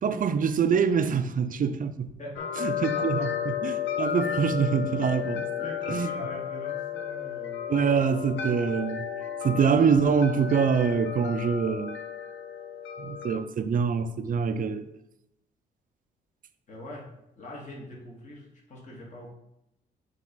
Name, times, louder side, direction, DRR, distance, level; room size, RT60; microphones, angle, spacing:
voice 1, 0.0-2.1 2.6-5.5 5.9-6.1 7.7-9.1 9.4-12.0 13.0-14.9, right 6 dB, 45° right, 0.6 m, -25 dB
voice 2, 2.2-3.3 5.6-7.7 16.7-17.0 17.4-19.3, left 1 dB, 40° left, 2.1 m, -42 dB
sound 1, 2.4-13.4, left 9 dB, 80° left, 0.7 m, -33 dB
7.4 x 3.2 x 4.1 m
supercardioid pair, 70°, 19 cm